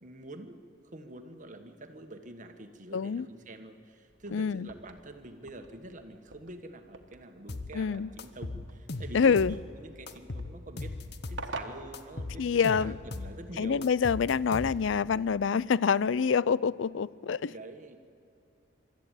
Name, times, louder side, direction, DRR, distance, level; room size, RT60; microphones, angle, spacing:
voice 1, 0.0-13.8 17.5-18.0, right 2 dB, 40° right, 1.5 m, -46 dB
voice 2, 2.9-3.3 4.3-4.7 7.7-8.1 9.1-9.6 12.4-12.9 13.6-17.5, left 6 dB, 80° left, 0.4 m, -26 dB
sound 1, 4.1-12.8, right 3 dB, 70° right, 1.5 m, -48 dB
sound 2, 7.5-7.7 8.2-9.6 10.1-11.5 11.9-13.4 13.8-15.0, left 2 dB, 60° left, 1.0 m, -38 dB
24.0 x 13.0 x 9.1 m
head